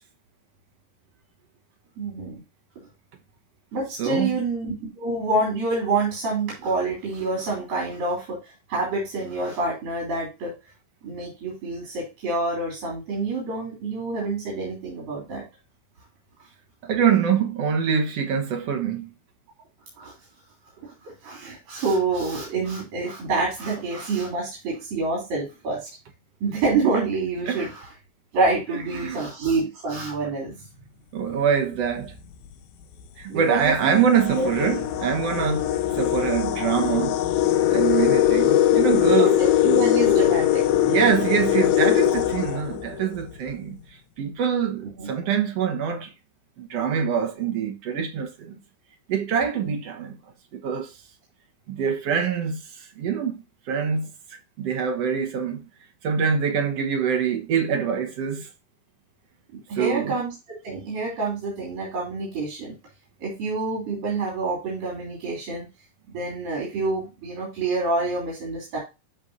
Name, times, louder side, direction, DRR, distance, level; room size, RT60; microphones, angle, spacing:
voice 1, 2.0-2.4 3.7-8.4 8.7-10.5 11.0-15.4 20.0-20.1 20.8-25.9 26.4-27.9 28.3-30.5 33.3-34.0 34.3-34.5 39.1-40.6 45.0-45.1 59.5-60.3 60.6-62.7 63.2-65.7 66.1-68.8, right 3 dB, 75° right, 4.8 m, -27 dB
voice 2, 4.0-4.4 16.8-19.1 27.5-27.6 28.7-29.2 31.1-32.1 33.2-35.7 35.9-37.2 37.7-39.4 40.8-43.8 44.2-46.1 46.6-48.6 49.1-50.2 50.5-50.9 51.7-54.1 54.6-55.7 56.0-58.5 59.8-60.2, right 7 dB, 55° right, 2.0 m, -24 dB
sound 1, 31.9-32.2 33.0-33.1 33.5-43.3, left 12 dB, 90° left, 2.6 m, -21 dB
12.5 x 4.6 x 2.6 m
omnidirectional pair, 4.1 m